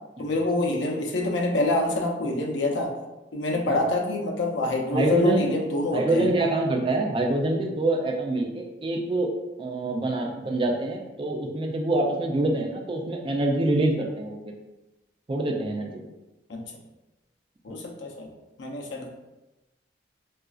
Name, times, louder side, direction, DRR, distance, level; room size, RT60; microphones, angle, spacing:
voice 1, 0.2-2.9 3.3-6.2 16.5-16.6 17.6-18.3 18.6-19.1, left 2 dB, 75° left, 1 dB, 0.5 m, -26 dB
voice 2, 4.9-5.5 5.9-9.3 9.6-14.4 15.3-16.0 17.7-17.8, right 2 dB, 25° right, 1 dB, 0.3 m, -25 dB
3.8 x 2.4 x 2.3 m, 1.0 s
head